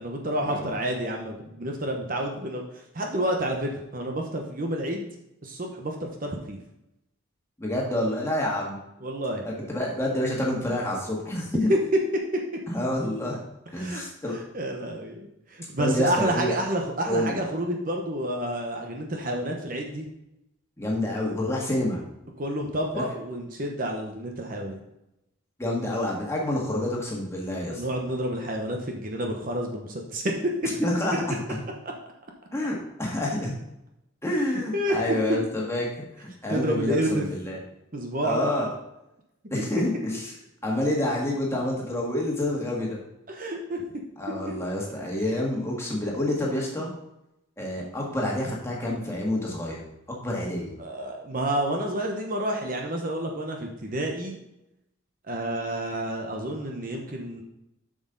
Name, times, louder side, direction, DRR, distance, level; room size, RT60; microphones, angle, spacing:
voice 1, 0.0-2.6 2.9-5.1 5.4-6.6 9.0-9.5 11.7-11.8 13.8-14.0 14.5-20.1 22.4-24.8 27.6-30.5 34.7-35.0 35.3-35.4 36.5-37.2 37.9-38.5 43.3-43.8 50.8-54.4 55.3-57.4, right 1 dB, 40° right, 2 dB, 0.9 m, -29 dB
voice 2, 7.6-8.8 9.5-11.7 12.7-13.4 13.7-14.4 15.8-16.5 17.1-17.4 20.8-22.0 22.9-23.0 25.6-27.8 30.8-31.6 32.5-33.5 34.2-35.9 36.2-37.6 38.2-38.7 39.5-40.3 40.6-43.0 44.2-46.9 47.6-49.8 50.1-50.8, left 1 dB, 15° left, -3 dB, 1.8 m, -28 dB
7.7 x 6.4 x 3.9 m, 0.87 s
head